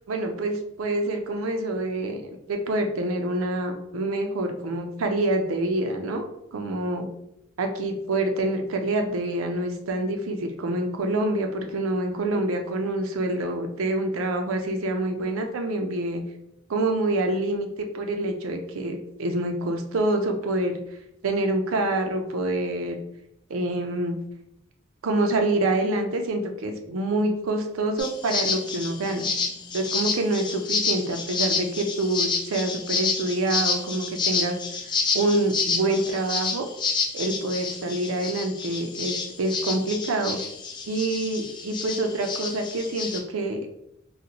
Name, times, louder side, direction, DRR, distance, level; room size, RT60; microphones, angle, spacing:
voice 1, 0.1-6.2 6.5-7.1 7.6-16.2 16.7-20.8 21.2-23.0 23.5-24.2 25.0-29.3 29.7-34.6 35.1-36.7 37.1-40.4 40.9-43.7, right 2 dB, 80° right, 5 dB, 0.5 m, -26 dB
sound 1, 28.0-43.2, left 4 dB, 20° left, 0.4 m, -29 dB
3.9 x 2.1 x 2.8 m, 0.80 s
head